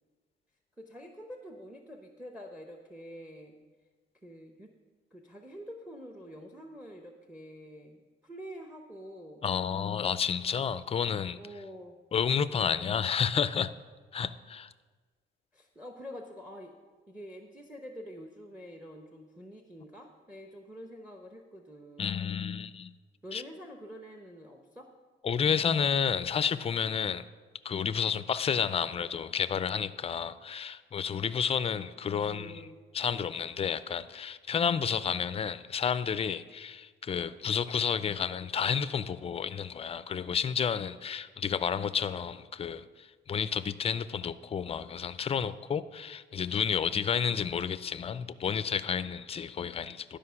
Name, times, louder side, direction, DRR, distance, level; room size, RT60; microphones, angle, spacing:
voice 1, 0.8-3.5 4.2-4.7 5.1-9.5 11.4-12.0 15.5-16.7 17.1-22.4 23.2-24.9 32.3-32.8 37.4-37.5 47.2-47.5, equal, 5° right, 4 dB, 0.8 m, -47 dB
voice 2, 9.4-11.4 12.1-13.7 14.1-14.7 22.0-22.9 23.3-23.4 25.2-27.2 27.6-32.6 32.9-50.2, left 7 dB, 30° left, 15 dB, 0.4 m, -31 dB
11.5 x 5.1 x 5.7 m, 1.4 s
cardioid pair, 90°, 20 cm